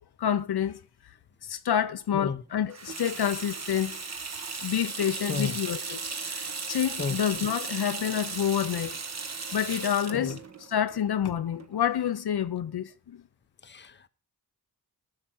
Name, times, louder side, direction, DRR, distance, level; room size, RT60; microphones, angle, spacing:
voice 1, 0.2-0.8 1.4-4.0 4.6-6.0 6.3-9.0 9.4-10.4 10.7-13.2, left 9 dB, 80° left, 0.7 m, -28 dB
Water tap faucet / Sink (filling or washing), 2.7-12.0, right 4 dB, 45° right, 1.2 m, -36 dB
voice 2, 13.6-14.1, left 5 dB, 30° left, 0.7 m, -32 dB
15.0 x 5.7 x 5.8 m
wide cardioid pair, 85°, 38 cm